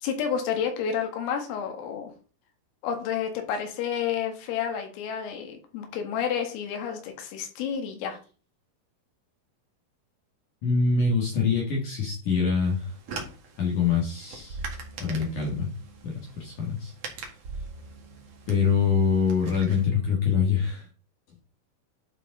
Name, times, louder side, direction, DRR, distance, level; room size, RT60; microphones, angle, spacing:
voice 1, 0.0-2.1 2.8-8.2, left 7 dB, 85° left, 4 dB, 4.3 m, -30 dB
voice 2, 10.6-12.9 13.6-14.6 15.0-15.7 16.0-16.9 18.5-20.9, left 5 dB, 55° left, 0 dB, 2.4 m, -24 dB
sound 1, 12.6-19.9, right 4 dB, 85° right, 1.4 m, -44 dB
sound 2, 14.5-20.2, right 2 dB, 35° right, 3.9 m, -45 dB
11.5 x 5.1 x 3.8 m, 0.37 s
omnidirectional pair, 5.8 m